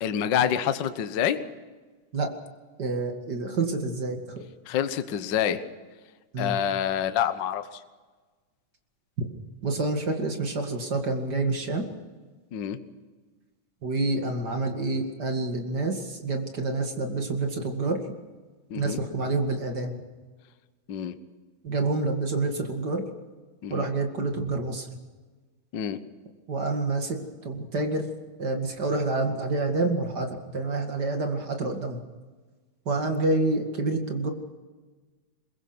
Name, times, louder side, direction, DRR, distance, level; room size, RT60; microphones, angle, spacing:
voice 1, 0.0-1.4 4.7-5.6 6.4-7.8 12.5-12.8 18.7-19.0 20.9-21.2 23.6-23.9 25.7-26.0, left 9 dB, 80° left, 10 dB, 1.0 m, -27 dB
voice 2, 2.8-4.4 6.3-6.6 9.2-9.3 9.6-11.8 13.8-18.0 18.8-20.0 21.6-23.0 23.7-24.9 26.5-27.2 27.4-28.1 28.4-32.0 32.9-34.3, right 2 dB, 35° right, 4 dB, 2.3 m, -28 dB
23.0 x 21.5 x 6.1 m, 1.4 s
omnidirectional pair, 3.8 m